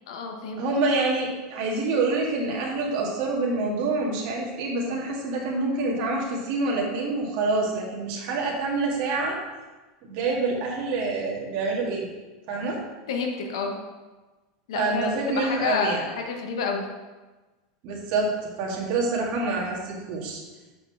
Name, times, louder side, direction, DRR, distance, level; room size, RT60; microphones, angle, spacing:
voice 1, 0.1-0.6 13.1-13.8 14.7-16.9, left 5 dB, 80° left, 3 dB, 1.2 m, -29 dB
voice 2, 0.6-9.4 10.0-12.1 12.5-12.8 14.8-16.0 17.8-18.3 18.6-20.4, right 3 dB, 55° right, -2 dB, 1.9 m, -26 dB
6.7 x 5.4 x 4.7 m, 1.2 s
supercardioid pair, 135°, 3 cm